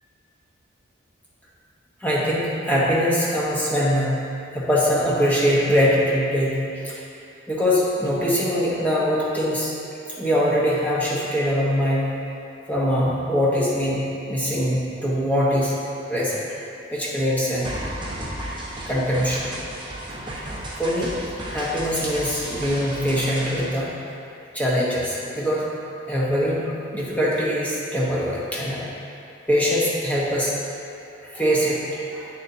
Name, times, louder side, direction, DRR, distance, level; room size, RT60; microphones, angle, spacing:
voice 1, 2.0-4.2 4.5-7.0 7.5-9.7 10.2-12.1 12.7-15.7 16.1-16.4 16.9-17.7 18.9-19.5 20.8-21.2 21.5-24.0 24.5-25.7 26.1-28.9 29.5-30.6 31.2-32.3, equal, 10° left, -7 dB, 1.0 m, -22 dB
sound 1, 17.6-23.6, right 1 dB, 25° right, 1.0 m, -34 dB
7.7 x 6.8 x 2.7 m, 2.7 s
head